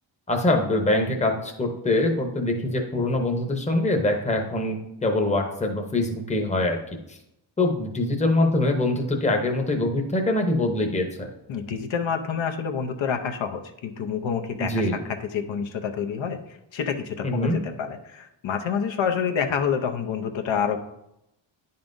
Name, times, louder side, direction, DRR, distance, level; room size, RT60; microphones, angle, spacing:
voice 1, 0.3-6.8 7.6-11.3 14.6-15.0 17.2-17.6, left 2 dB, 15° left, 3 dB, 0.8 m, -24 dB
voice 2, 11.5-20.8, left 7 dB, 85° left, 6 dB, 0.8 m, -28 dB
10.0 x 5.5 x 2.6 m, 0.84 s
wide cardioid pair, 145°, 45 cm